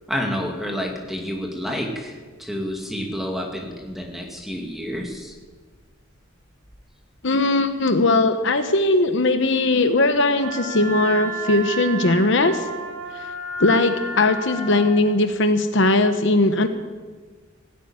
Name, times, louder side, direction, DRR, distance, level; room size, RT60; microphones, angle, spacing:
voice 1, 0.1-5.3, equal, ahead, 1 dB, 2.2 m, -29 dB
voice 2, 7.2-12.6 13.6-16.7, left 2 dB, 65° left, 9 dB, 1.0 m, -19 dB
Wind instrument woodwind instrument, 10.4-14.9, right 2 dB, 65° right, 4.4 m, -32 dB
16.5 x 9.2 x 9.5 m, 1.4 s
head